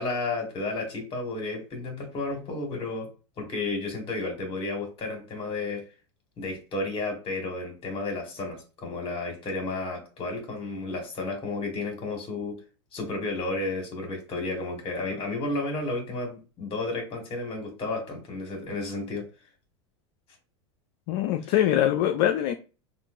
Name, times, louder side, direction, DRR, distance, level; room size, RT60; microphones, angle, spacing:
voice 1, 0.0-3.1 3.4-5.8 6.4-12.6 12.9-19.2 21.4-21.5, left 2 dB, 40° left, 2 dB, 1.8 m, -32 dB
voice 2, 21.1-22.5, left 11 dB, 55° left, 7 dB, 0.5 m, -23 dB
5.2 x 2.5 x 2.7 m, 0.33 s
hypercardioid pair, 90°, 15 cm